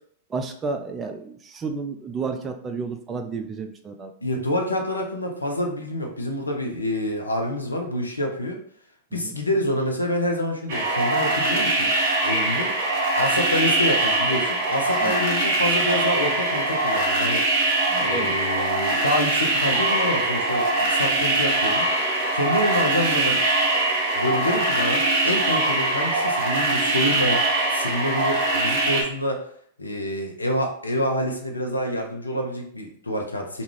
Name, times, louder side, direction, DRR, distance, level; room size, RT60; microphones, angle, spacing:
voice 1, 0.3-4.1 9.1-9.3 15.0-15.1 17.9-18.4, right 4 dB, 25° right, 5 dB, 0.4 m, -31 dB
voice 2, 4.2-8.6 9.1-11.9 12.2-12.7 13.2-17.5 18.0-21.9 22.3-23.4 24.1-27.4 27.7-29.4 29.8-33.6, left 1 dB, 85° left, 1 dB, 0.6 m, -27 dB
sound 1, 10.7-29.0, right 2 dB, 55° right, 0.9 m, -22 dB
2.4 x 2.3 x 3.2 m, 0.63 s
figure-of-eight pair, 95°, 0 cm